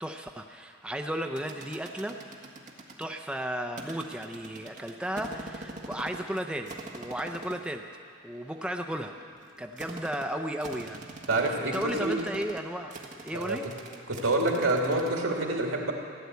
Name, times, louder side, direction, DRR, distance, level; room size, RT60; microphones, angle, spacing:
voice 1, 0.0-2.2 3.0-7.8 8.2-9.1 9.6-11.1 11.6-12.9 13.2-13.6, right 1 dB, 5° right, 4 dB, 0.5 m, -34 dB
sound 1, 1.4-3.1 3.8-6.4 6.7-7.7 8.3-15.1, right 2 dB, 40° right, 1.5 m, -43 dB
voice 2, 11.3-12.2 13.3-13.6 14.1-15.9, right 2 dB, 75° right, 0 dB, 2.4 m, -27 dB
16.0 x 10.5 x 8.1 m, 2.5 s
head